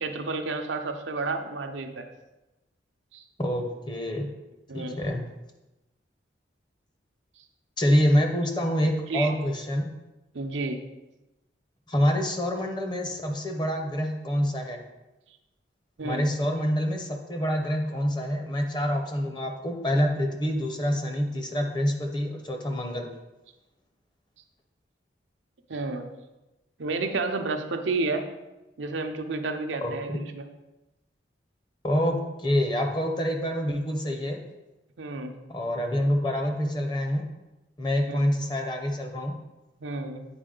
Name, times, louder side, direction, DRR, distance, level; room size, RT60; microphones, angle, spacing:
voice 1, 0.0-2.1 3.1-3.2 4.7-5.0 9.1-9.3 10.3-10.8 16.0-16.3 25.7-26.0 26.8-28.2 28.8-30.4 35.0-35.3 38.1-38.2 39.8-40.2, right 3 dB, 85° right, 5 dB, 0.7 m, -31 dB
voice 2, 3.4-4.3 4.7-5.2 7.8-9.9 11.9-14.8 16.0-23.1 29.8-30.2 31.8-34.4 35.5-37.3 37.8-39.4, equal, 25° left, 3 dB, 0.8 m, -26 dB
8.7 x 4.5 x 3.9 m, 1.0 s
head